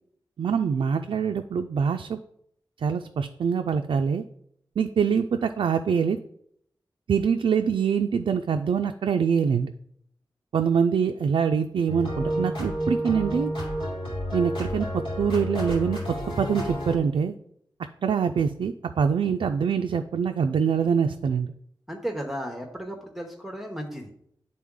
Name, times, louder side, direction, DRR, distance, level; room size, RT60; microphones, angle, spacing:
voice 1, 0.4-2.2 2.8-4.2 4.8-6.2 7.1-9.7 10.5-13.5 14.3-16.0 16.4-17.3 18.0-21.5, right 6 dB, 85° right, 5 dB, 0.3 m, -24 dB
sound 1, 11.9-17.0, equal, 90° left, 2.8 m, -30 dB
voice 2, 21.9-24.1, equal, 5° right, 2 dB, 0.8 m, -34 dB
10.0 x 3.9 x 3.6 m, 0.71 s
wide cardioid pair, 120°, 8 cm